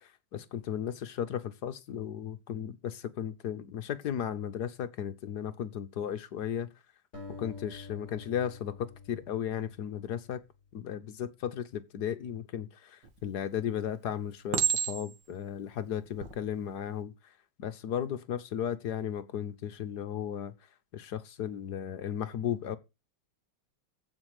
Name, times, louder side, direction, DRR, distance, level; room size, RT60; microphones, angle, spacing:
voice 1, 0.3-6.7 7.4-8.8 9.1-10.4 10.7-17.1 17.6-20.5 20.9-22.8, left 9 dB, 60° left, 1.2 m, -35 dB
sound 1, 7.1-10.4, left 4 dB, 35° left, 5.0 m, -47 dB
Chink clink, 13.0-13.5 14.5-15.3 16.0-16.3, right 7 dB, 60° right, 2.1 m, -30 dB
15.0 x 5.3 x 4.9 m
omnidirectional pair, 2.3 m